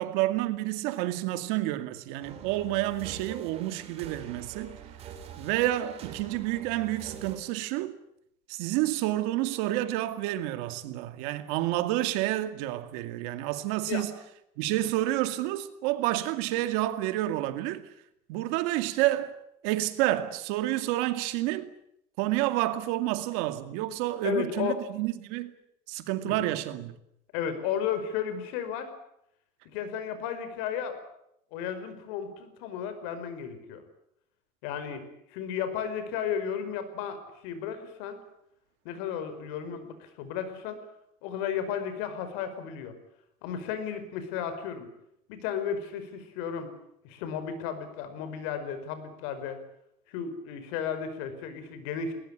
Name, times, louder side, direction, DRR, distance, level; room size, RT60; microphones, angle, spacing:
voice 1, 0.0-4.8 5.4-7.9 8.5-14.1 14.6-17.8 18.3-19.3 19.6-21.7 22.2-25.5 25.9-26.9, right 15 dB, 70° right, 2.2 m, -29 dB
sound 1, 2.2-7.4, right 6 dB, 35° right, 3.8 m, -45 dB
voice 2, 24.2-24.8 26.2-26.5 27.3-28.9 29.7-31.0 31.5-33.8 34.6-35.0 35.3-38.2 38.9-40.8 41.2-43.0 43.4-44.9 45.3-46.7 47.0-49.6 50.1-52.1, left 8 dB, 75° left, 5.1 m, -34 dB
21.0 x 19.5 x 10.0 m
cardioid pair, 170°, 17 cm